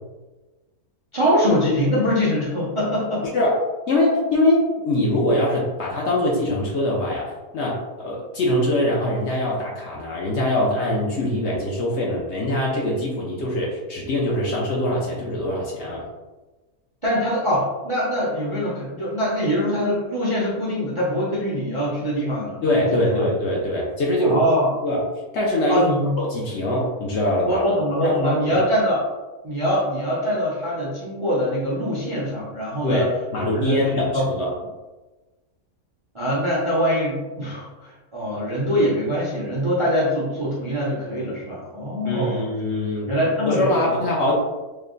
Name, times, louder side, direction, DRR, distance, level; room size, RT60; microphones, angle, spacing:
voice 1, 1.1-3.3 17.0-22.6 22.9-23.2 24.2-24.7 25.7-26.1 27.5-29.0 29.4-33.1 33.5-34.2 36.1-42.4 43.1-44.0, equal, 35° right, -7 dB, 0.4 m, -23 dB
voice 2, 3.2-16.0 22.6-24.4 24.8-25.0 25.3-25.9 26.2-27.6 28.0-28.6 32.8-34.5 42.0-44.3, left 1 dB, 60° left, -3 dB, 0.8 m, -23 dB
3.2 x 2.1 x 3.7 m, 1.2 s
omnidirectional pair, 1.6 m